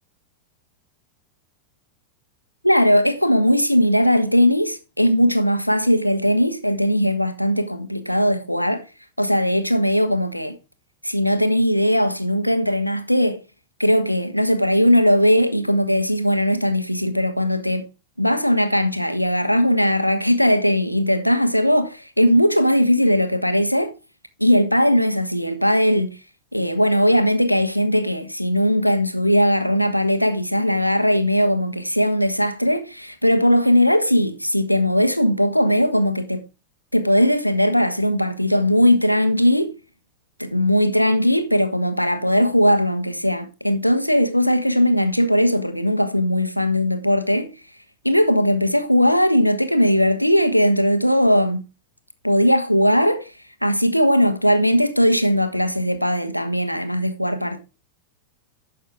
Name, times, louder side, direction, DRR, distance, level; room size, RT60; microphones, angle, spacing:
voice 1, 2.6-8.8 9.2-10.6 11.0-13.4 13.8-17.8 18.2-23.9 24.4-26.2 26.5-36.4 36.9-39.7 40.4-47.5 48.0-51.6 52.2-53.3 53.6-57.6, equal, 90° left, 1.1 m, -19 dB
11.0 x 6.3 x 3.6 m
figure-of-eight pair, 90°, 0 cm